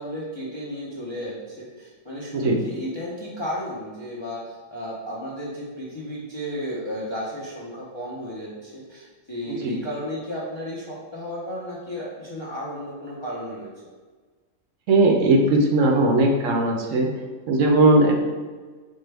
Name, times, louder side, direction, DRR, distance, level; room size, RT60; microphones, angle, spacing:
voice 1, 0.0-13.7, equal, 35° left, -7 dB, 0.4 m, -33 dB
voice 2, 14.9-17.1 17.5-18.1, right 2 dB, 70° right, 1 dB, 0.9 m, -18 dB
5.3 x 2.1 x 3.3 m, 1.4 s
omnidirectional pair, 1.4 m